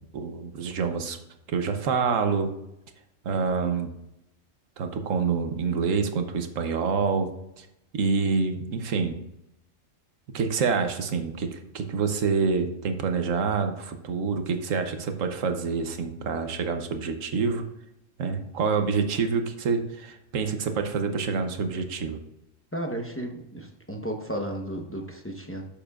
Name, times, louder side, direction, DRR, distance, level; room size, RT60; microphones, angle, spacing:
voice 1, 0.1-1.2 1.5-2.5 3.2-3.9 4.8-7.7 7.9-9.2 10.3-17.6 18.2-22.2, right 5 dB, 75° right, 6 dB, 1.3 m, -27 dB
voice 2, 22.7-25.7, right 1 dB, 10° left, 2 dB, 0.9 m, -33 dB
12.0 x 7.1 x 2.5 m, 0.85 s
omnidirectional pair, 1.3 m